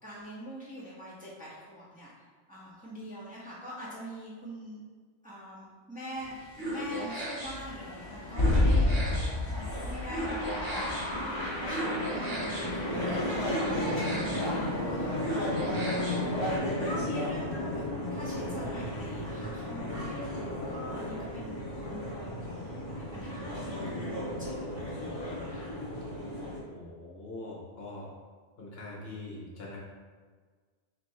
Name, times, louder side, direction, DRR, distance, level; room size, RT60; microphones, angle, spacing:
voice 1, 0.0-4.8 5.2-8.9 9.5-17.8 18.1-25.8, equal, 10° right, -8 dB, 0.9 m, -45 dB
sound 1, 6.1-16.4, right 1 dB, 35° right, 1.6 m, -38 dB
sound 2, 7.4-26.6, left 1 dB, 25° left, 0.9 m, -32 dB
voice 2, 26.7-28.1 28.6-29.8, left 2 dB, 60° left, -4 dB, 1.0 m, -43 dB
3.3 x 3.1 x 4.2 m, 1.5 s
omnidirectional pair, 1.3 m